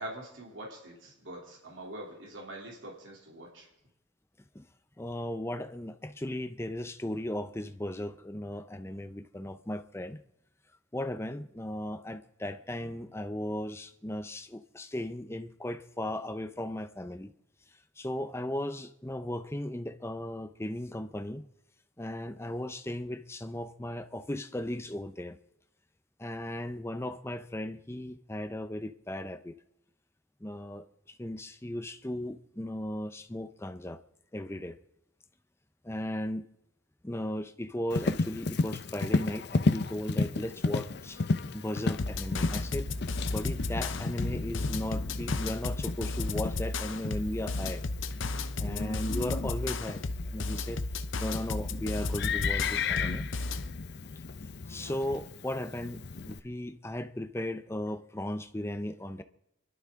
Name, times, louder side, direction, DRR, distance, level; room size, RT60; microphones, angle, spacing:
voice 1, 0.0-3.7, right 1 dB, 80° right, 3.2 m, -44 dB
voice 2, 5.0-10.2 10.9-17.3 18.0-21.5 22.0-25.4 26.2-29.5 30.4-34.0 34.3-34.8 35.8-36.4 37.0-41.2 41.5-42.9 43.3-47.8 48.6-50.0 50.3-50.8 51.2-53.3 54.7-59.2, left 1 dB, 15° left, 0.6 m, -36 dB
Livestock farm animals working animals, 37.9-56.4, left 3 dB, 60° left, 0.6 m, -34 dB
sound 1, 42.0-53.7, left 3 dB, 85° left, 0.8 m, -34 dB
28.5 x 12.0 x 3.7 m
head